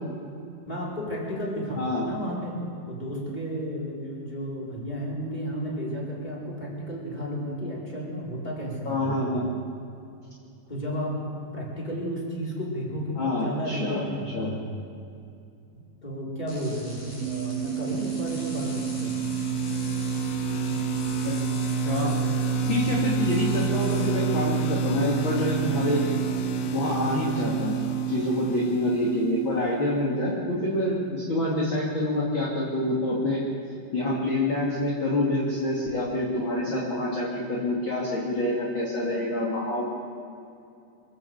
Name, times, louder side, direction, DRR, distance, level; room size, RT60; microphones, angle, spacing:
voice 1, 0.7-2.6 2.9-9.5 10.7-14.7 15.7-19.2, equal, 10° left, -5 dB, 4.9 m, -33 dB
voice 2, 8.9-9.5 13.1-14.0 14.3-14.5 21.2-21.4 21.8-22.2 22.7-26.1 26.7-27.7 28.1-33.4 33.9-39.8, left 1 dB, 35° left, -5 dB, 3.1 m, -27 dB
sound 1, 16.5-24.1, left 1 dB, 65° left, 7.8 m, -43 dB
sound 2, 17.2-29.5, right 12 dB, 85° right, 2.6 m, -31 dB
sound 3, 17.8-29.6, right 3 dB, 85° left, 3.1 m, -30 dB
25.0 x 14.0 x 8.1 m, 2.6 s
omnidirectional pair, 4.2 m